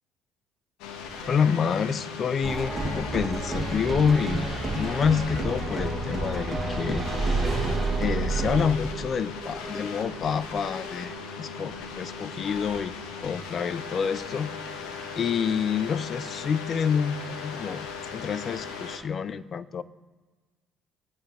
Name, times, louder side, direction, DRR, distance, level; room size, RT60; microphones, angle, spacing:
sound 1, 0.8-19.0, left 5 dB, 80° left, 1.6 m, -38 dB
voice 1, 1.3-7.1 8.0-14.7 15.2-19.8, left 6 dB, 45° left, 16 dB, 0.6 m, -28 dB
sound 2, 2.4-8.7, right 3 dB, 15° right, 2.8 m, -29 dB
sound 3, 5.1-17.2, right 3 dB, 35° right, 4.0 m, -41 dB
20.0 x 9.6 x 3.4 m, 1.3 s
supercardioid pair, 75°, 0 cm